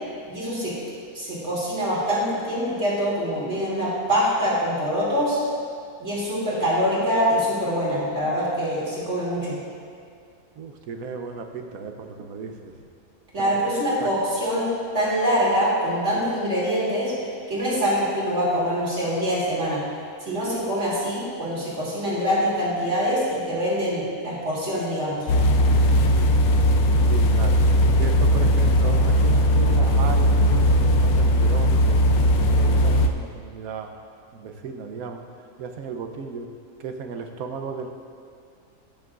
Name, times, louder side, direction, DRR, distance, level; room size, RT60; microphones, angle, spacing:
voice 1, 0.3-0.7 1.1-5.4 6.0-9.6 13.3-17.1 17.5-19.8 20.2-25.3, equal, 50° right, -7 dB, 3.0 m, -24 dB
voice 2, 10.6-12.7 13.4-13.6 14.0-14.1 27.0-27.6 27.9-32.0 32.3-33.9 34.3-36.5 36.8-37.9, right 5 dB, 75° right, 5 dB, 1.2 m, -35 dB
sound 1, 25.3-33.1, equal, 85° left, 1.1 m, -18 dB
18.0 x 6.9 x 2.5 m, 2.3 s
omnidirectional pair, 1.5 m